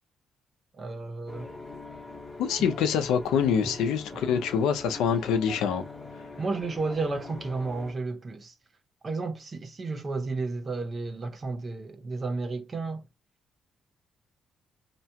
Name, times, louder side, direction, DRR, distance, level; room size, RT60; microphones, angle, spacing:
voice 1, 0.7-1.5 2.6-2.7 3.6-3.7 4.1-4.2 6.4-8.5 9.0-13.0, right 3 dB, 35° right, 0.8 m, -32 dB
sound 1, 1.3-7.9, left 3 dB, 15° left, 0.8 m, -42 dB
voice 2, 2.4-5.8, left 7 dB, 90° left, 0.6 m, -25 dB
2.9 x 2.2 x 2.8 m
cardioid pair, 90°, 0 cm